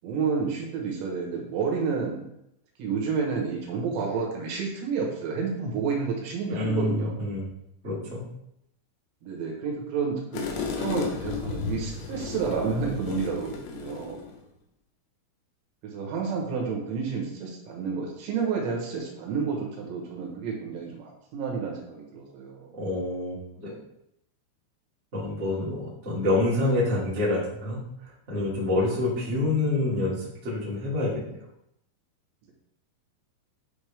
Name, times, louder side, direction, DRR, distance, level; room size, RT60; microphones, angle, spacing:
voice 1, 0.0-2.2 2.8-7.1 9.2-14.2 15.8-22.7 28.8-28.9, right 5 dB, 75° right, -1 dB, 3.3 m, -30 dB
voice 2, 6.5-7.5 7.8-8.2 22.7-23.8 25.1-31.4, left 2 dB, 40° right, -8 dB, 1.0 m, -27 dB
sound 1, 10.3-14.4, left 6 dB, 80° left, 3.1 m, -34 dB
9.4 x 3.5 x 3.3 m, 0.78 s
omnidirectional pair, 5.5 m